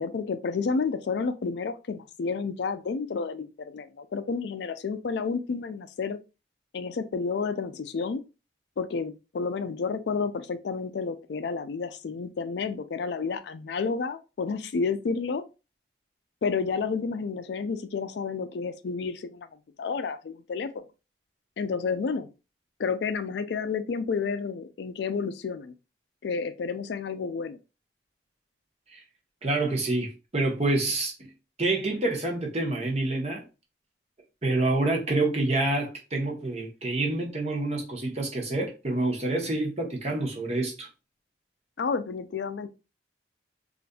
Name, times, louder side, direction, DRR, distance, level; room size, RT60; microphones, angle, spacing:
voice 1, 0.0-6.2 6.7-8.2 8.8-15.4 16.4-19.5 19.8-20.8 21.6-22.3 22.8-25.7 26.2-27.6 41.8-42.7, left 5 dB, 65° left, 0.4 m, -30 dB
voice 2, 29.4-31.3 31.6-33.4 34.4-40.9, right 2 dB, 35° right, 0.9 m, -27 dB
3.9 x 2.5 x 2.3 m
head